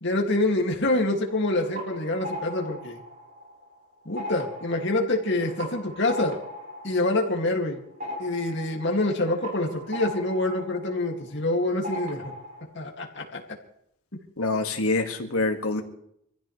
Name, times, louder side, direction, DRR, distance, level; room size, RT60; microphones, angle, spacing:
voice 1, 0.0-3.0 4.1-6.4 6.8-7.8 8.2-12.3 12.7-13.4, left 2 dB, 55° left, 1 dB, 2.5 m, -26 dB
sound 1, 1.3-3.7 4.0-11.5 11.8-12.7, left 1 dB, 40° right, 4.4 m, -39 dB
voice 2, 14.4-15.8, left 2 dB, 85° left, 4 dB, 2.1 m, -25 dB
24.5 x 15.5 x 3.4 m, 0.73 s
head